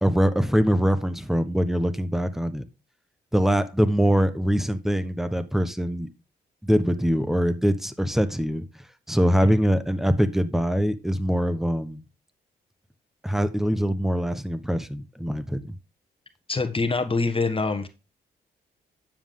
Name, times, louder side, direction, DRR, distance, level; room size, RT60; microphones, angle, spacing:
voice 1, 0.0-2.6 3.3-6.1 6.6-8.6 9.1-12.0 13.2-15.8, equal, ahead, 1.1 m, -23 dB
voice 2, 16.5-17.9, left 3 dB, 30° left, 1.4 m, -25 dB
9.5 x 7.5 x 3.7 m
cardioid pair, 75°, 18 cm